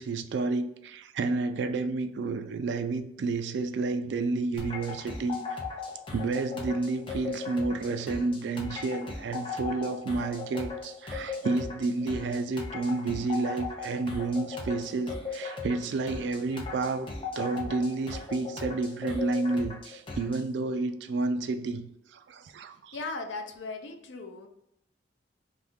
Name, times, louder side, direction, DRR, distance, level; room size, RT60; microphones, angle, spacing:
voice 1, 0.0-5.4 6.1-23.0, right 3 dB, 70° right, 0.3 m, -30 dB
sound 1, 4.6-20.5, left 4 dB, 30° left, 0.5 m, -38 dB
voice 2, 22.9-24.5, left 3 dB, 80° left, 0.5 m, -37 dB
2.7 x 2.5 x 3.5 m
head